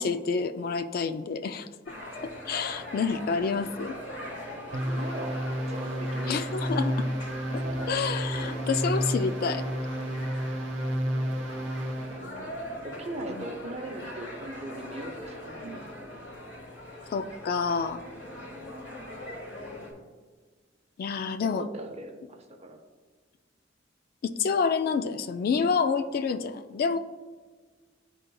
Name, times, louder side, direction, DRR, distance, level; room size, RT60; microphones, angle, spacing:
voice 1, 0.0-1.7 2.2-4.0 6.3-7.1 7.9-9.6 13.4-13.5 17.1-18.0 21.0-21.7 24.2-27.0, left 5 dB, 50° left, 9 dB, 0.3 m, -28 dB
sound 1, 1.9-19.9, left 1 dB, 70° left, 1.6 m, -41 dB
voice 2, 4.7-5.4 5.7-6.4 7.3-7.9 8.3-8.6 12.1-12.6 12.8-15.9 18.2-18.4 21.4-22.8, right 1 dB, 35° right, 5 dB, 0.7 m, -40 dB
sound 2, 4.7-12.3, equal, 70° right, 0.9 m, -31 dB
11.0 x 3.8 x 2.3 m, 1.4 s
head